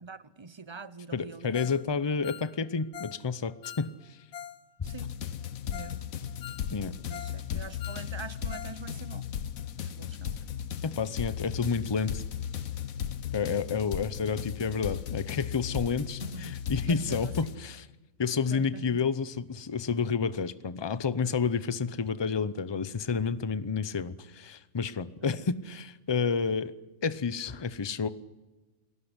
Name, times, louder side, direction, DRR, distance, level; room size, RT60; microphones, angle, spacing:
voice 1, 0.0-1.7 4.8-5.1 5.7-6.1 7.1-9.3 9.8-10.5 16.2-17.6 18.5-19.0 25.2-25.4, right 4 dB, 30° right, 15 dB, 0.5 m, -44 dB
voice 2, 1.1-4.2 6.7-7.0 7.5-7.6 10.8-12.2 13.3-17.9 18.2-26.7 27.0-28.1, left 5 dB, 30° left, 15 dB, 0.5 m, -30 dB
Ringtone, 1.5-1.8 2.1-4.6 4.9-5.0 5.4-5.5 5.7-6.0 6.3-7.4 7.7-8.8 9.0-9.1 9.6-9.7, left 9 dB, 85° left, 1.6 m, -44 dB
sound 1, 4.8-17.6, left 9 dB, 70° left, 1.3 m, -36 dB
29.0 x 17.5 x 8.0 m, 1.2 s
omnidirectional pair, 1.6 m